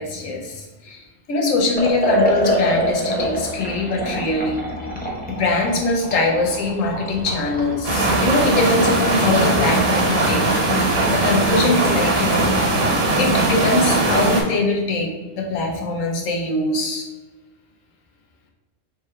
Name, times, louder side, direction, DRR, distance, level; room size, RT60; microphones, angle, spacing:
voice 1, 0.0-4.7 5.3-10.6 11.1-17.1, left 2 dB, 75° left, 0 dB, 1.2 m, -22 dB
Liquid, 1.7-12.9, equal, 15° left, 0.3 m, -27 dB
sound 1, 7.8-14.4, right 2 dB, 70° right, 1.4 m, -19 dB
3.4 x 3.2 x 4.3 m, 1.2 s
omnidirectional pair, 1.4 m